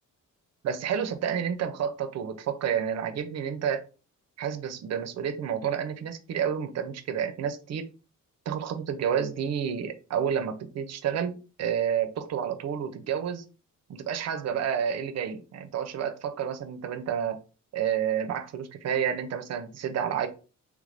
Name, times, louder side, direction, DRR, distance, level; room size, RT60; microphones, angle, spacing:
voice 1, 0.6-3.8 4.4-7.9 8.5-13.4 13.9-17.4 17.7-20.3, right 8 dB, 50° right, 0.5 m, -30 dB
3.4 x 2.5 x 3.3 m
wide cardioid pair, 180°, 33 cm